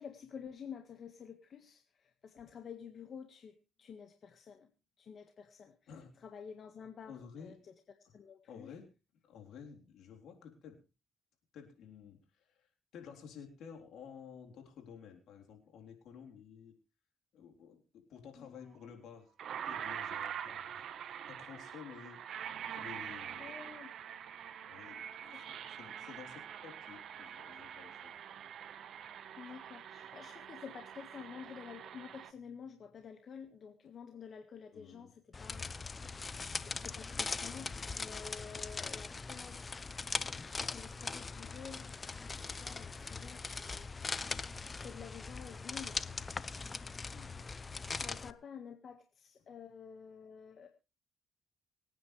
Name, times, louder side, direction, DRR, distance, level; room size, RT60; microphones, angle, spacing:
voice 1, 0.0-4.7 5.0-5.9 6.2-7.7 8.1-8.7 18.3-18.8 23.4-23.9 25.3-25.6 29.4-36.0 36.6-39.7 40.6-41.9 42.2-43.9 44.8-46.0 48.0-50.7, left 7 dB, 55° left, 5 dB, 1.7 m, -50 dB
voice 2, 5.9-6.2 7.1-7.5 8.5-8.9 9.3-10.8 11.5-16.8 17.3-19.3 19.7-22.4 22.7-23.6 24.6-28.2 34.7-35.1 47.1-47.5, left 7 dB, 80° left, 2 dB, 3.8 m, -53 dB
sound 1, 18.7-18.8 19.4-32.3, right 9 dB, 70° right, 1.2 m, -45 dB
sound 2, 35.3-48.3, left 4 dB, 30° left, 0.7 m, -41 dB
24.5 x 9.5 x 3.3 m, 0.30 s
cardioid pair, 90°, 0 cm